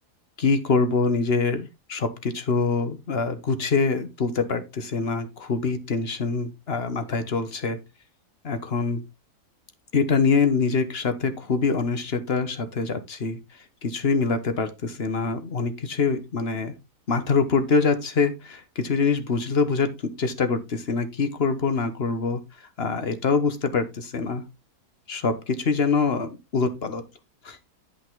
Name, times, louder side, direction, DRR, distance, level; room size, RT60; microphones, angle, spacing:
voice 1, 0.4-7.8 8.4-9.0 9.9-13.4 13.8-16.7 17.1-19.9 20.2-22.4 22.8-24.4 25.1-27.0 27.4-27.6, left 4 dB, 40° left, 10 dB, 1.3 m, -24 dB
11.0 x 5.5 x 3.8 m, 0.24 s
omnidirectional pair, 1.7 m